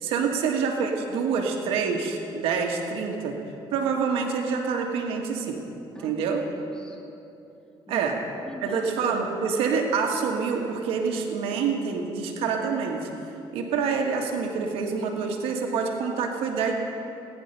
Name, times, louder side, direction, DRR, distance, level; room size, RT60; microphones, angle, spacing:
voice 1, 0.0-3.4 3.7-5.6 6.0-6.4 7.9-8.2 8.6-13.1 13.5-16.7, right 5 dB, 90° right, 2 dB, 1.7 m, -26 dB
voice 2, 5.9-7.0 7.9-8.9, left 1 dB, 10° left, 1 dB, 1.7 m, -43 dB
19.5 x 10.5 x 5.5 m, 2.9 s
cardioid pair, 115°, 9 cm